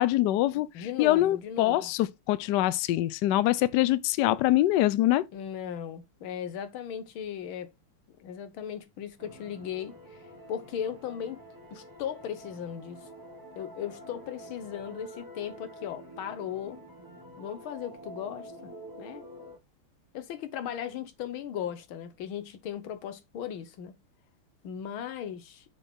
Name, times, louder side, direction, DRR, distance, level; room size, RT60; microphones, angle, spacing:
voice 1, 0.0-0.7 1.0-5.2, left 15 dB, 90° left, 0.9 m, -24 dB
voice 2, 0.7-1.9 5.3-7.7 8.1-10.2 10.5-11.4 11.7-13.1 13.6-16.8 17.4-18.7 19.0-19.2 20.1-23.9 24.6-25.6, left 9 dB, 70° left, 1.7 m, -37 dB
sound 1, 9.2-19.6, right 1 dB, 15° right, 0.8 m, -47 dB
6.9 x 4.2 x 3.6 m
omnidirectional pair, 2.4 m